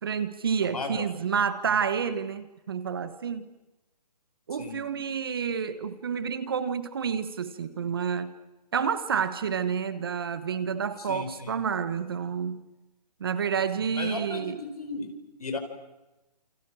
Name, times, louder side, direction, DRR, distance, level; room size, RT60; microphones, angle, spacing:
voice 1, 0.0-3.4 4.5-8.3 8.7-12.6 13.2-14.6, right 7 dB, 35° right, 1.2 m, -29 dB
voice 2, 0.6-1.0 4.5-4.8 11.0-11.5 13.8-15.1 15.4-15.6, left 3 dB, 60° left, 5.2 m, -36 dB
28.5 x 27.5 x 6.2 m
hypercardioid pair, 175°, 21 cm